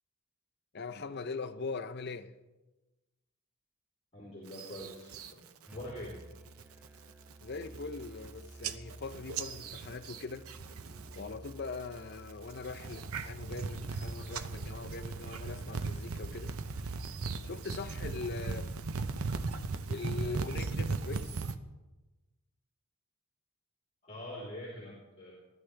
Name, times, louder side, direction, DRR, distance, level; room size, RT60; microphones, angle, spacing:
voice 1, 0.7-2.3 7.4-10.5 11.2-16.5 17.4-18.7 19.9-21.4, left 4 dB, 45° left, 0.7 m, -41 dB
voice 2, 4.1-5.4 5.7-6.2 24.0-25.3, left 1 dB, 25° left, 3.7 m, -44 dB
sound 1, 4.5-5.3 5.7-6.1 6.5-6.9 7.3-7.4 7.6-8.3 8.6-11.2 11.5-12.0 12.5-21.6, right 4 dB, 70° right, 0.7 m, -37 dB
Musical instrument, 5.7-17.4, right 1 dB, 5° right, 0.5 m, -53 dB
20.0 x 11.5 x 3.4 m
head